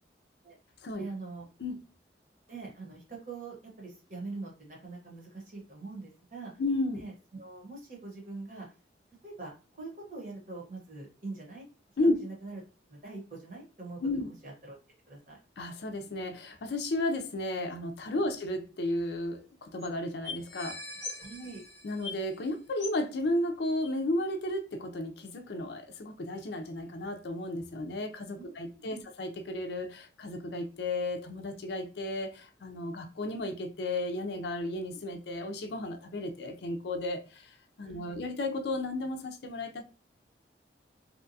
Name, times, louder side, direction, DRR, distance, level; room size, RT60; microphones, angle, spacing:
voice 1, 1.0-1.4 2.5-6.5 6.9-8.7 9.2-9.5 9.8-11.7 12.2-12.6 12.9-14.8 15.1-15.4 18.2-18.4 21.2-21.6 28.4-29.0 37.8-38.1, right 3 dB, 45° right, 1.0 m, -43 dB
voice 2, 6.6-7.0 12.0-12.2 14.0-14.3 15.6-20.8 21.8-39.8, left 1 dB, 65° left, 0.4 m, -33 dB
sound 1, 19.0-19.1 19.2-19.3 19.8-19.9 20.2-22.4 22.8-23.1 23.8-23.9, left 3 dB, 5° left, 0.8 m, -41 dB
2.7 x 2.2 x 2.6 m
head